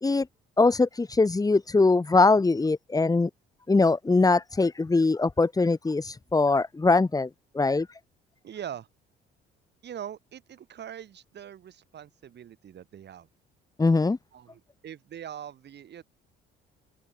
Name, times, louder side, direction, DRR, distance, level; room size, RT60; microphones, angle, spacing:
voice 1, 0.6-3.3 3.7-7.3 7.5-7.9 13.8-14.2, left 3 dB, 15° left, 1.7 m, -22 dB
voice 2, 8.4-8.9 9.8-13.3 14.3-16.0, right 9 dB, 55° right, 7.1 m, -42 dB
open air
cardioid pair, 90°, 21 cm